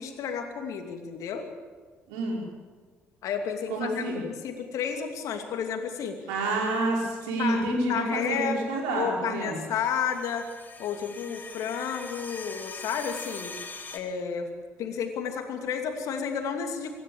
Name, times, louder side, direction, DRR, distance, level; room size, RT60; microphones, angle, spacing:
voice 1, 0.0-1.5 3.2-6.2 7.4-8.6 8.9-10.5 10.8-13.5 13.9-14.5 14.8-17.0, left 7 dB, 60° left, 5 dB, 2.7 m, -31 dB
voice 2, 2.1-2.4 3.7-4.2 6.3-9.6, right 2 dB, 70° right, -1 dB, 5.6 m, -28 dB
sound 1, 9.7-14.0, left 3 dB, 30° left, 2.4 m, -42 dB
25.5 x 14.0 x 7.3 m, 1.5 s
figure-of-eight pair, 50°, 6 cm